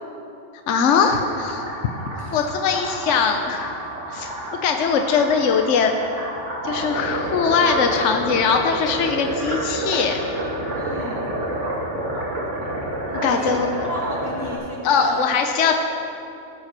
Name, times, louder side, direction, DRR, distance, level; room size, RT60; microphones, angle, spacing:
voice 1, 0.7-1.7 2.3-3.8 4.1-4.3 4.6-5.9 6.6-10.2 13.2-13.8 14.8-15.7, left 6 dB, 70° left, 5 dB, 1.1 m, -21 dB
sound 1, 0.9-14.5, right 1 dB, 70° right, 2.8 m, -29 dB
voice 2, 10.7-11.4 13.1-15.2 15.6-15.7, equal, 20° left, -4 dB, 1.5 m, -33 dB
16.5 x 7.8 x 6.0 m, 2.7 s
omnidirectional pair, 1.3 m